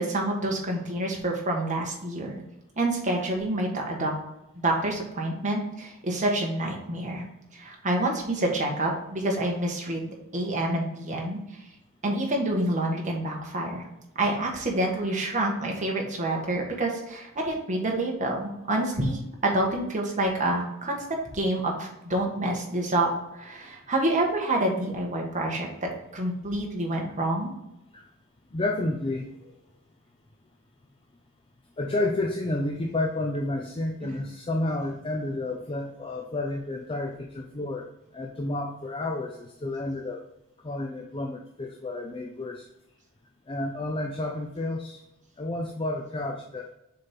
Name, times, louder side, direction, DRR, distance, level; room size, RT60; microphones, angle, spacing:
voice 1, 0.0-2.4 2.8-4.1 4.5-7.3 7.5-11.4 12.0-13.9 14.2-27.5 34.0-34.1, right 1 dB, 35° right, 0 dB, 1.5 m, -28 dB
voice 2, 28.5-29.5 31.8-37.9 38.1-40.2 40.6-42.7 43.5-45.0 45.4-46.7, left 2 dB, 25° left, 2 dB, 0.5 m, -31 dB
6.5 x 4.3 x 3.6 m, 0.88 s
head